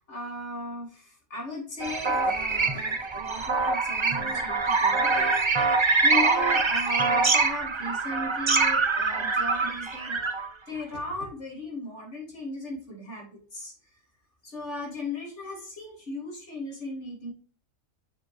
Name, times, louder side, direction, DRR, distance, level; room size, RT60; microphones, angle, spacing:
voice 1, 0.1-10.2 10.7-13.7 14.4-17.3, left 1 dB, 45° left, -1 dB, 3.4 m, -37 dB
sound 1, 1.8-10.5, right 4 dB, 35° right, 0.5 m, -24 dB
7.2 x 6.6 x 3.5 m, 0.40 s
omnidirectional pair, 1.7 m